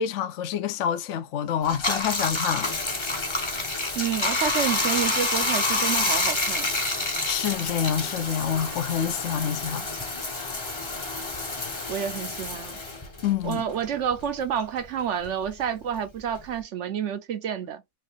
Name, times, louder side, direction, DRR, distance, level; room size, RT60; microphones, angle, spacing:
voice 1, 0.0-2.7 7.2-9.9 10.4-10.6 11.7-11.8 13.2-13.7, left 8 dB, 60° left, 0.9 m, -27 dB
Bathtub (filling or washing), 1.6-14.5 14.8-16.6, left 2 dB, 25° left, 0.8 m, -28 dB
voice 2, 4.0-6.7 11.9-12.8 13.4-17.8, right 8 dB, 60° right, 0.8 m, -29 dB
4.8 x 2.7 x 3.1 m
omnidirectional pair, 1.6 m